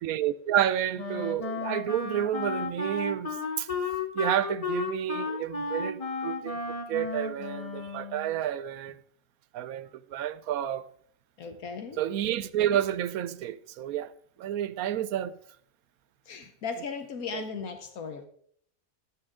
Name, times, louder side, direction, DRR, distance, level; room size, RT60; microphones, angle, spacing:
voice 1, 0.0-3.7 4.1-6.6 6.9-9.0 9.5-10.9 12.0-14.1 14.4-15.3 17.3-17.4, right 11 dB, 85° right, 1.0 m, -30 dB
Wind instrument woodwind instrument, 1.0-8.4, left 4 dB, 30° left, 0.8 m, -33 dB
voice 2, 11.4-12.1 16.3-18.3, left 5 dB, 80° left, 1.4 m, -37 dB
12.0 x 8.6 x 3.6 m
omnidirectional pair, 1.5 m